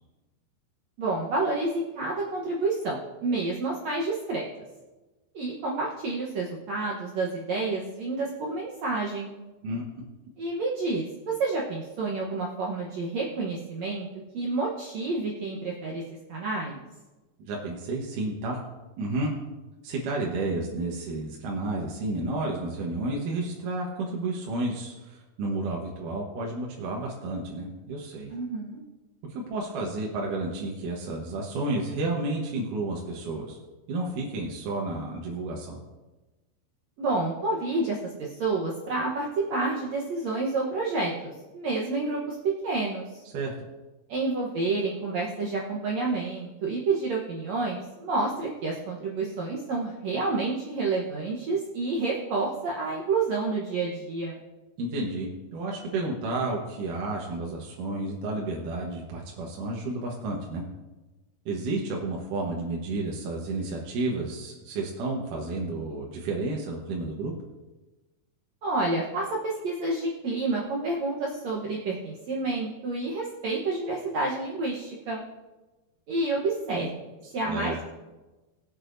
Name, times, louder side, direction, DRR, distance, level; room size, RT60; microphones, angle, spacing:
voice 1, 1.0-4.4 5.3-9.3 10.4-14.1 14.3-16.0 16.3-16.8 28.3-28.8 37.0-42.3 42.6-43.2 44.1-54.4 68.6-75.2 76.1-76.9 77.3-77.9, right 3 dB, 85° right, -3 dB, 1.5 m, -29 dB
voice 2, 17.5-18.6 19.0-19.3 19.8-28.3 29.3-33.6 33.9-35.8 43.3-43.5 54.8-60.6 61.5-67.3 77.2-77.8, right 2 dB, 65° right, -2 dB, 2.4 m, -31 dB
21.5 x 8.4 x 2.6 m, 1.1 s
omnidirectional pair, 4.8 m